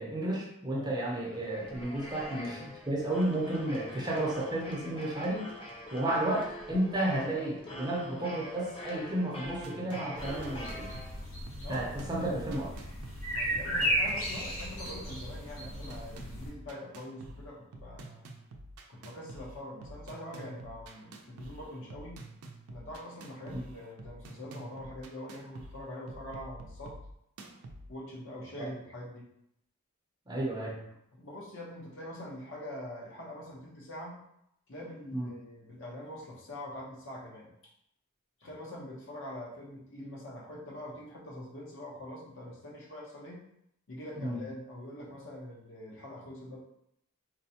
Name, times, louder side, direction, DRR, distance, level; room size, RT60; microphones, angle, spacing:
voice 1, 0.0-5.5 5.9-10.9 11.7-12.7 23.5-23.6 30.3-30.8 35.1-35.3 44.2-44.4, right 1 dB, 20° right, -3 dB, 0.6 m, -32 dB
sound 1, 1.0-11.5, left 1 dB, 25° left, 0.5 m, -45 dB
sound 2, 9.4-27.9, right 1 dB, 85° right, 0.5 m, -48 dB
sound 3, 10.2-16.5, equal, 80° left, 1.0 m, -35 dB
voice 2, 11.6-12.4 13.3-18.3 18.9-22.2 22.7-26.9 27.9-29.3 31.1-34.2 34.7-37.5 38.4-43.4 43.9-46.6, left 1 dB, 60° left, -3 dB, 0.9 m, -44 dB
4.0 x 2.1 x 2.8 m, 0.76 s
head